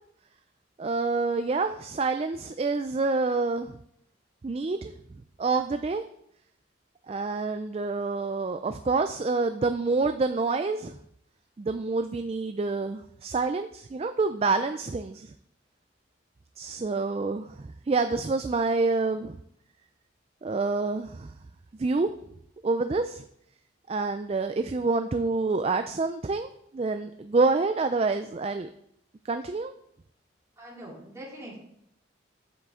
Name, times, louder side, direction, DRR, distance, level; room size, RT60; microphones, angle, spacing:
voice 1, 0.8-3.7 4.4-4.9 5.4-6.0 7.1-11.0 11.6-15.3 16.6-19.4 20.4-21.3 21.8-22.1 22.6-23.2 23.9-28.7 29.2-29.7, right 3 dB, 30° right, 9 dB, 0.3 m, -27 dB
voice 2, 30.6-31.6, right 1 dB, 15° right, -6 dB, 3.4 m, -43 dB
9.7 x 7.5 x 3.7 m, 0.73 s
head